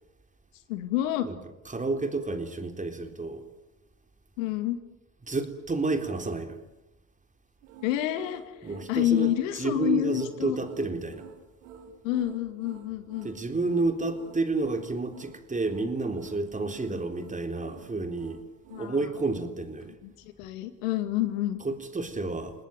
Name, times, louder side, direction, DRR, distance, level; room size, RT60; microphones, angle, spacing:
voice 1, 0.7-1.3 4.4-4.8 7.8-8.4 8.9-10.6 12.0-13.3 16.9-17.0 18.7-19.0 20.0-21.6, left 13 dB, 75° left, 2.4 m, -28 dB
voice 2, 1.7-3.4 5.2-6.6 8.6-11.3 13.2-18.4 18.8-20.0 21.6-22.7, right 3 dB, 20° right, 3.8 m, -30 dB
sound 1, 7.6-19.5, right 6 dB, 75° right, 4.7 m, -50 dB
28.0 x 19.0 x 9.3 m
hypercardioid pair, 65°, 40 cm